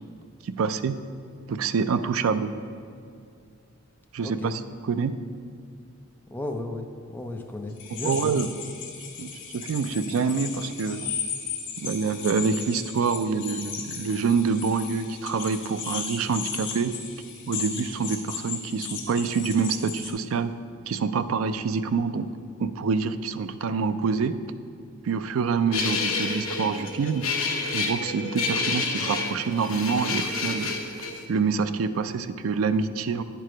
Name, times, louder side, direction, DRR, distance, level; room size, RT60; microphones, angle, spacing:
voice 1, 0.4-1.0 1.5-2.5 4.1-5.2 8.0-8.5 9.2-11.1 11.8-17.0 17.5-20.6 20.9-22.3 22.6-24.4 25.0-27.3 27.7-30.7 31.3-33.2, right 5 dB, 75° right, 12 dB, 0.4 m, -26 dB
voice 2, 4.2-4.5 6.3-8.4, left 2 dB, 10° left, 3 dB, 0.5 m, -34 dB
sound 1, 7.8-20.1, left 6 dB, 55° left, 1.2 m, -36 dB
sound 2, 25.7-31.2, left 4 dB, 75° left, 0.9 m, -29 dB
9.4 x 4.6 x 5.0 m, 2.4 s
head